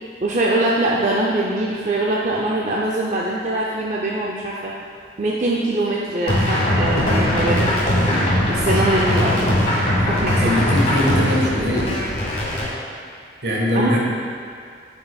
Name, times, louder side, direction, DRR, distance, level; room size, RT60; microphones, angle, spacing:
voice 1, 0.2-4.7 5.2-7.8 8.5-9.6 10.1-10.7 13.7-14.0, right 2 dB, 40° right, -4 dB, 0.5 m, -22 dB
sound 1, 6.3-12.7, left 1 dB, 40° left, 1.2 m, -20 dB
voice 2, 10.4-11.9 13.4-14.0, left 1 dB, 70° right, -4 dB, 1.4 m, -21 dB
9.5 x 6.0 x 2.3 m, 2.2 s
head